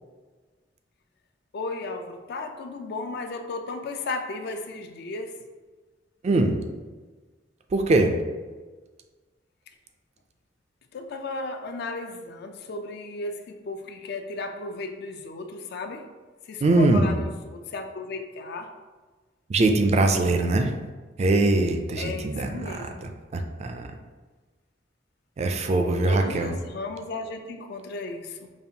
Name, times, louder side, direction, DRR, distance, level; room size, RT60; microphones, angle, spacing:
voice 1, 1.5-5.3 10.9-16.1 16.5-18.7 22.0-23.1 25.8-28.5, left 3 dB, 60° left, 6 dB, 0.4 m, -35 dB
voice 2, 6.2-6.6 7.7-8.1 16.6-17.1 19.5-20.7 21.2-23.9 25.4-26.5, right 2 dB, 35° right, 5 dB, 0.3 m, -22 dB
5.2 x 2.4 x 2.7 m, 1.3 s
head